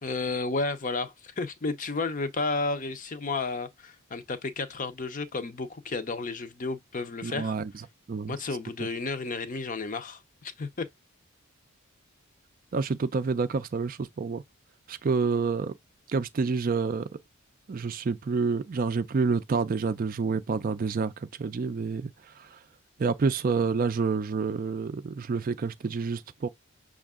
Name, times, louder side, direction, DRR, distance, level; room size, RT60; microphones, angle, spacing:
voice 1, 0.0-7.5 8.3-10.9, left 3 dB, 35° left, 0.6 m, -32 dB
voice 2, 7.2-7.7 8.1-8.3 12.7-14.4 14.9-15.7 16.1-17.1 17.7-22.1 23.0-26.5, right 4 dB, 40° right, 0.3 m, -28 dB
6.2 x 2.4 x 3.6 m
head